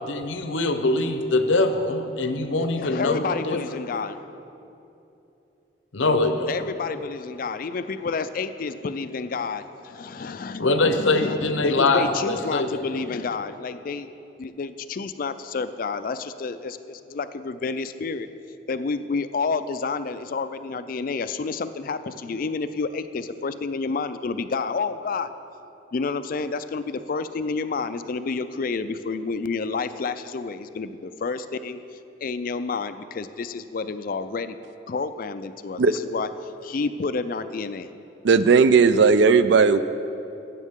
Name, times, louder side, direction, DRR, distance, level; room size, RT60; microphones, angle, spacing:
voice 1, 0.0-3.6 5.9-6.5 10.6-12.7, left 2 dB, 75° left, 7 dB, 0.8 m, -23 dB
voice 2, 2.6-4.3 6.5-14.1 14.4-18.3 18.7-25.3 25.9-31.8 32.2-34.6 34.9-37.9, left 4 dB, 45° left, 12 dB, 0.4 m, -29 dB
voice 3, 38.2-39.8, right 5 dB, 60° right, 13 dB, 0.4 m, -16 dB
15.5 x 8.3 x 3.6 m, 2.8 s
head